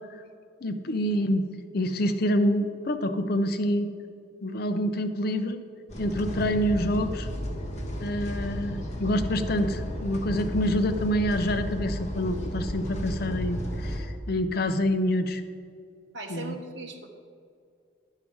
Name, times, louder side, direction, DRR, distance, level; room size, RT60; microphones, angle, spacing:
voice 1, 0.6-1.5 1.7-3.9 4.4-5.6 6.0-7.3 8.0-15.4 16.3-16.5, equal, 55° left, 8 dB, 0.6 m, -27 dB
sound 1, 5.9-14.0, equal, 35° left, 1.2 m, -33 dB
voice 2, 16.1-17.1, right 3 dB, 65° right, 3 dB, 1.0 m, -38 dB
10.5 x 5.7 x 4.7 m, 2.3 s
head